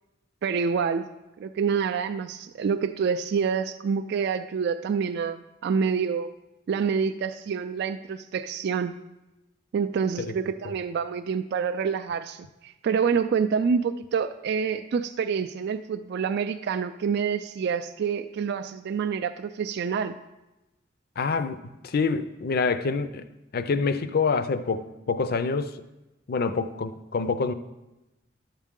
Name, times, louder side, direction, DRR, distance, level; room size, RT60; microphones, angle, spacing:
voice 1, 0.4-1.1 1.4-6.3 6.7-8.9 9.7-20.2, right 6 dB, 60° right, 0.3 m, -27 dB
voice 2, 21.2-23.2 23.5-25.8 26.3-27.5, left 4 dB, 55° left, 0.5 m, -26 dB
11.5 x 7.3 x 3.7 m
head